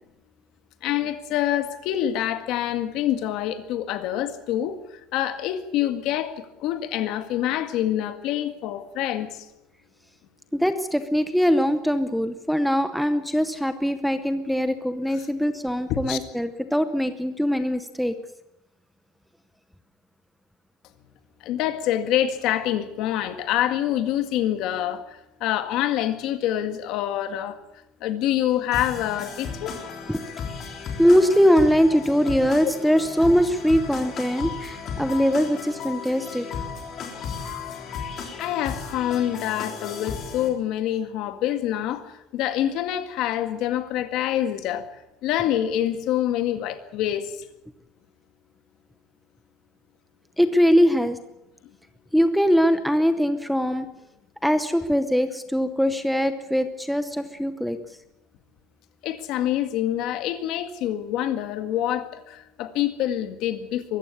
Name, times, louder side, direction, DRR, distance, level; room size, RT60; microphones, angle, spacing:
voice 1, 0.8-9.5 16.1-16.2 21.4-27.6 28.0-29.8 38.4-44.9 45.2-47.5 59.0-64.0, left 11 dB, 55° left, 1.8 m, -26 dB
voice 2, 10.5-18.1 30.1-30.2 31.0-36.5 50.4-51.2 52.1-53.9 54.4-57.8, equal, ahead, 0.8 m, -22 dB
sound 1, 28.7-40.5, left 6 dB, 35° left, 3.8 m, -35 dB
23.5 x 14.5 x 8.3 m
cardioid pair, 170°, 0 cm